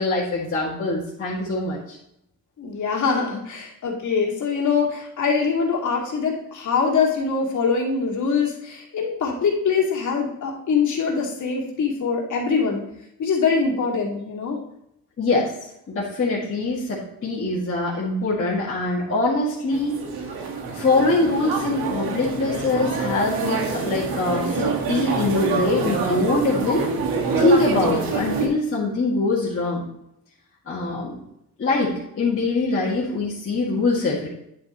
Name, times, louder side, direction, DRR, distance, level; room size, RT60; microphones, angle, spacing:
voice 1, 0.0-2.0 15.2-15.5 15.9-20.0 20.7-26.9 27.4-29.9 30.7-31.2 31.6-34.3, left 2 dB, 35° left, -8 dB, 2.0 m, -23 dB
voice 2, 2.6-12.8 13.2-14.6, left 5 dB, 55° left, -1 dB, 2.3 m, -23 dB
sound 1, 19.7-28.5, right 4 dB, 85° right, 1.6 m, -26 dB
9.4 x 7.9 x 3.0 m, 0.78 s
cardioid pair, 120°, 35 cm